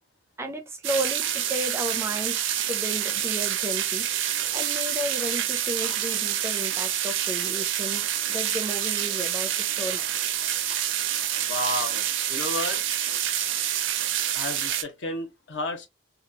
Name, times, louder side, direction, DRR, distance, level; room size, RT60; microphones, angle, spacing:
voice 1, 0.4-4.1 4.5-10.0, equal, 15° right, 0.4 m, -33 dB
sound 1, 0.8-14.8, right 10 dB, 80° right, 0.5 m, -27 dB
voice 2, 11.4-12.8 14.3-15.9, left 2 dB, 70° left, 0.8 m, -32 dB
2.9 x 2.3 x 2.6 m
head